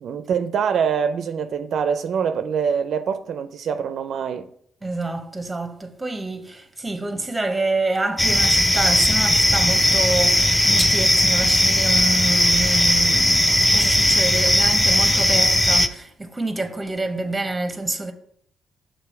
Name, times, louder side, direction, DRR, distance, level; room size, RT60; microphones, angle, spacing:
voice 1, 0.0-4.5, right 7 dB, 65° right, 0.4 m, -24 dB
voice 2, 4.8-18.1, right 2 dB, 10° right, 0.9 m, -27 dB
sound 1, 8.2-15.9, left 1 dB, 10° left, 0.5 m, -18 dB
6.7 x 3.8 x 5.8 m
cardioid pair, 90°, 0 cm